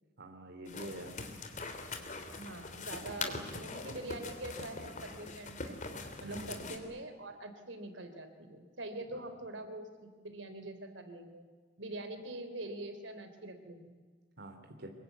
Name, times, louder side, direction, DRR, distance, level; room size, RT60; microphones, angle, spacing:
voice 1, 0.2-1.2 3.2-3.3 6.2-6.7 9.1-9.4 14.4-14.9, right 1 dB, 60° right, 4 dB, 2.9 m, -47 dB
sound 1, 0.6-6.8, left 3 dB, 40° left, 3.2 m, -42 dB
voice 2, 2.3-5.8 6.2-11.5 11.8-14.0, right 1 dB, 80° right, 8 dB, 3.3 m, -44 dB
25.0 x 22.5 x 9.3 m, 1.5 s
head